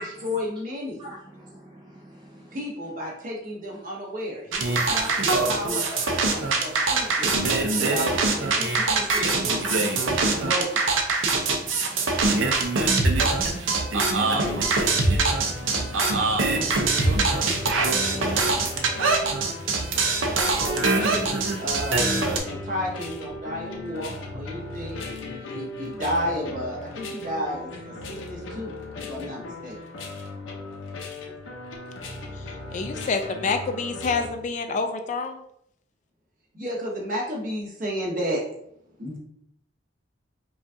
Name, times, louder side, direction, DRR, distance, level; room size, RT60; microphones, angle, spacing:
voice 1, 0.0-1.0 2.5-7.3 7.8-10.8 14.1-14.6 20.5-22.1 22.4-28.7 29.0-29.8 36.5-38.4 39.0-39.2, equal, 45° right, -2 dB, 1.1 m, -32 dB
voice 2, 1.0-2.6 4.7-4.9 6.0-6.6 7.0-7.1 7.7-8.0 8.5-9.7 11.4-14.3 15.0-18.6, right 1 dB, 25° right, -3 dB, 0.5 m, -45 dB
sound 1, 4.5-22.4, right 3 dB, 80° right, 0.6 m, -23 dB
sound 2, 14.4-34.3, left 2 dB, 80° left, 0.7 m, -37 dB
voice 3, 32.7-35.4, left 4 dB, 40° left, 6 dB, 0.3 m, -27 dB
4.9 x 2.4 x 2.6 m, 0.75 s
head